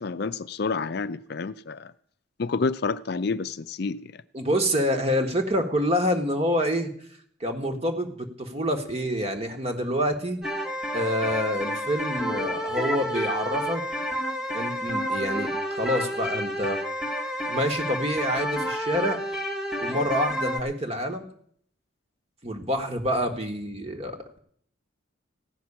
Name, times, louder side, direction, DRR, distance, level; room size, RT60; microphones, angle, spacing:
voice 1, 0.0-1.9 2.4-4.2, left 4 dB, 55° left, 0.5 m, -29 dB
voice 2, 4.3-6.9 7.4-10.4 10.9-13.8 14.5-16.8 17.5-19.2 19.8-21.2 22.4-24.4, equal, 30° right, 1.5 m, -27 dB
sound 1, 10.4-20.6, equal, 5° right, 1.4 m, -30 dB
15.5 x 6.1 x 9.8 m
head